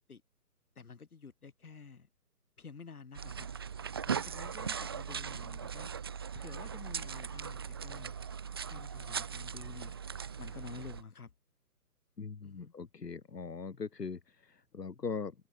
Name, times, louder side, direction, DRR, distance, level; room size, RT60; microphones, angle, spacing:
voice 1, 0.8-2.1 2.6-3.5 4.1-5.9 6.3-8.1 8.7-9.9 10.4-11.3 12.4-12.7, left 5 dB, 60° left, 5.8 m, -50 dB
sound 1, 3.1-11.0, right 7 dB, 15° right, 1.4 m, -39 dB
voice 2, 12.2-15.3, left 5 dB, 80° left, 4.5 m, -40 dB
hypercardioid pair, 175°, 48 cm